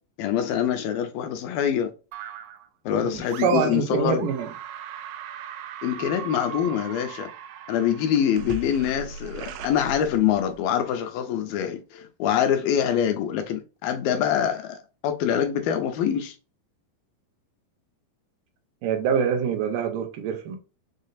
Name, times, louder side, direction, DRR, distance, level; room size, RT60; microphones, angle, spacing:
voice 1, 0.2-1.9 2.9-4.3 5.8-7.3 7.7-16.4, left 9 dB, 80° left, 2.3 m, -25 dB
sound 1, 2.1-2.7 3.3-3.9 4.2-10.6, right 8 dB, 90° right, 2.5 m, -39 dB
voice 2, 3.0-4.5 18.8-20.6, right 7 dB, 75° right, 2.2 m, -25 dB
6.4 x 2.4 x 2.4 m
omnidirectional pair, 4.3 m